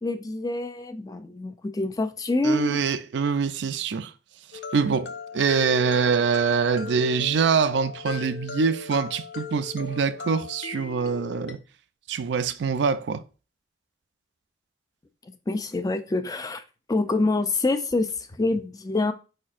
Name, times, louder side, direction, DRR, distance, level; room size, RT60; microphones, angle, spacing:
voice 1, 0.0-2.8 15.5-16.6 16.9-19.1, left 2 dB, 20° left, 0.4 m, -26 dB
voice 2, 2.4-4.1 4.7-11.6 12.1-13.2, right 5 dB, 70° right, 0.4 m, -24 dB
sound 1, 4.5-11.5, left 5 dB, 75° left, 0.6 m, -38 dB
4.9 x 4.3 x 2.4 m
head